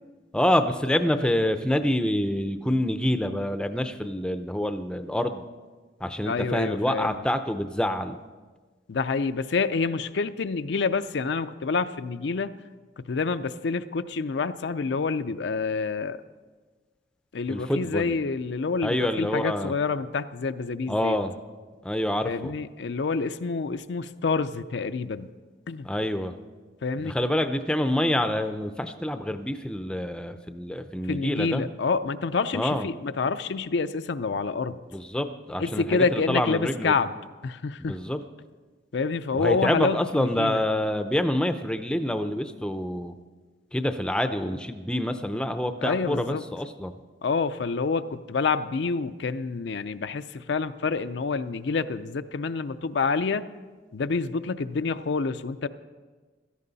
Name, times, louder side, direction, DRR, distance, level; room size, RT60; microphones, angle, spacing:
voice 1, 0.3-5.4 6.0-8.2 17.5-18.2 18.8-19.7 20.9-21.3 21.8-22.5 25.8-26.4 27.0-31.7 32.5-32.9 34.9-37.0 37.8-38.2 39.4-43.1 43.7-46.9, left 1 dB, 5° left, 8 dB, 0.5 m, -27 dB
voice 2, 6.3-7.1 8.9-12.5 13.0-16.2 17.3-21.2 22.2-25.3 25.7-25.9 26.8-27.1 31.1-34.8 35.6-37.1 37.4-38.0 38.9-40.6 45.8-46.4 47.2-53.4 53.9-55.7, left 4 dB, 75° left, 11 dB, 0.5 m, -27 dB
16.5 x 13.5 x 4.0 m, 1.4 s
head